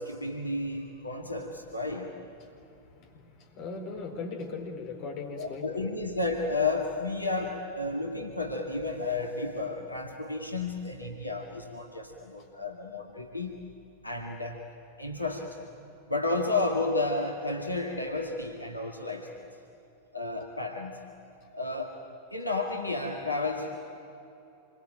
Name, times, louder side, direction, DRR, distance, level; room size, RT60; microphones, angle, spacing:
voice 1, 0.0-2.2 5.4-13.7 14.0-14.6 15.0-15.7 16.1-19.5 20.1-21.1 21.5-23.8, left 3 dB, 85° left, 2 dB, 2.1 m, -32 dB
voice 2, 3.4-5.9, left 4 dB, 40° left, 3 dB, 4.5 m, -38 dB
27.5 x 24.0 x 9.0 m, 2.8 s
figure-of-eight pair, 90°, 0 cm